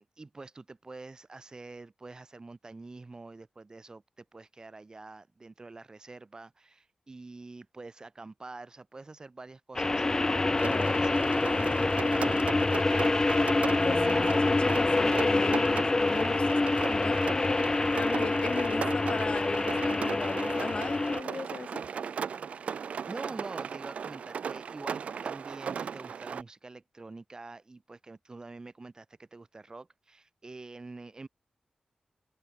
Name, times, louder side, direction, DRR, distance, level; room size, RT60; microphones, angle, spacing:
voice 1, 0.0-13.0 13.8-14.7 23.1-31.3, right 3 dB, 35° right, 5.5 m, -46 dB
sound 1, 9.7-21.2, left 2 dB, 30° left, 1.1 m, -26 dB
voice 2, 10.6-11.0 13.8-21.8, left 4 dB, 55° left, 3.2 m, -37 dB
Rain, 10.6-26.4, right 6 dB, 80° right, 4.5 m, -37 dB
cardioid pair, 80°, 2 cm